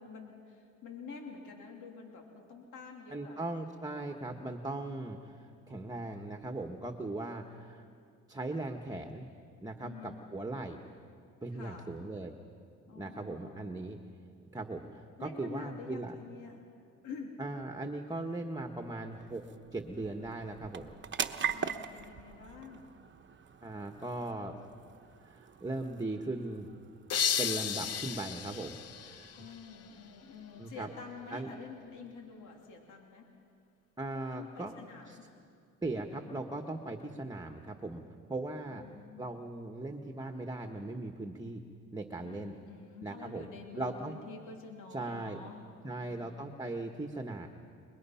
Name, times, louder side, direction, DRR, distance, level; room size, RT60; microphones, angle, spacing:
voice 1, 0.0-3.4 9.8-10.4 11.5-11.9 12.9-13.7 15.2-16.6 17.0-17.4 21.5-22.9 29.4-33.3 34.3-35.3 38.7-39.3 42.2-46.5, left 4 dB, 80° left, 1 dB, 2.9 m, -48 dB
voice 2, 3.1-7.9 8.3-9.3 9.6-10.8 11.4-12.3 12.9-14.0 14.5-16.1 17.4-19.4 19.7-20.9 23.6-24.6 25.2-26.7 27.4-28.8 29.0-29.3 30.6-30.9 31.3-31.5 34.0-34.7 35.1-35.2 35.8-38.0 38.3-38.9 39.2-41.6 41.9-42.6 43.0-43.5 43.7-44.1 44.9-45.4 45.8-47.5, right 2 dB, 10° right, 4 dB, 1.4 m, -39 dB
sound 1, 17.7-32.6, right 7 dB, 40° right, 1.0 m, -44 dB
sound 2, 27.1-29.9, left 8 dB, 55° left, 0.9 m, -34 dB
29.5 x 21.0 x 5.8 m, 2.3 s
cardioid pair, 90°, 30 cm